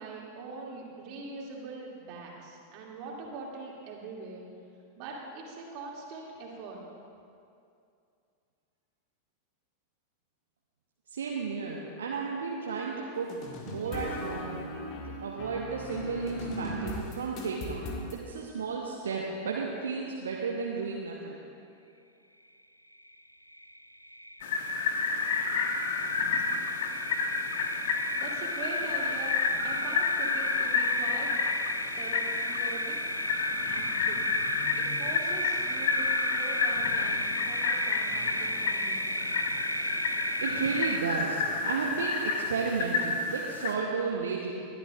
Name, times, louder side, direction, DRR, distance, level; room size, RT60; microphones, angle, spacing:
voice 1, 0.0-4.5 5.0-6.8 28.1-31.3 32.0-33.0 33.7-34.4 34.8-39.1, right 3 dB, 40° right, -3 dB, 2.6 m, -42 dB
voice 2, 11.1-13.3 13.7-14.6 15.2-21.4 40.4-44.5, right 5 dB, 65° right, -2 dB, 1.1 m, -33 dB
sound 1, 13.3-18.2, left 1 dB, 35° left, 1.8 m, -37 dB
sound 2, 22.9-23.2 23.5-41.0, equal, 90° left, 0.3 m, -35 dB
sound 3, 24.4-43.8, left 4 dB, 55° left, 1.1 m, -30 dB
21.5 x 11.5 x 2.5 m, 2.5 s
figure-of-eight pair, 90°, 0 cm